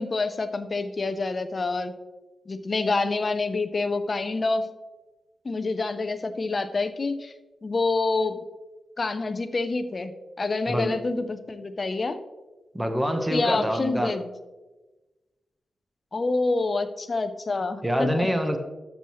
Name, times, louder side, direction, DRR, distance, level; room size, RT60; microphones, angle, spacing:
voice 1, 0.0-1.9 2.5-4.7 5.4-7.3 7.6-8.4 9.0-12.2 13.3-14.3 16.1-18.3, left 3 dB, 35° left, 9 dB, 0.5 m, -27 dB
voice 2, 12.7-14.1 17.8-18.6, equal, 5° right, 5 dB, 1.0 m, -25 dB
12.5 x 6.3 x 3.0 m, 1.2 s
wide cardioid pair, 135°, 0 cm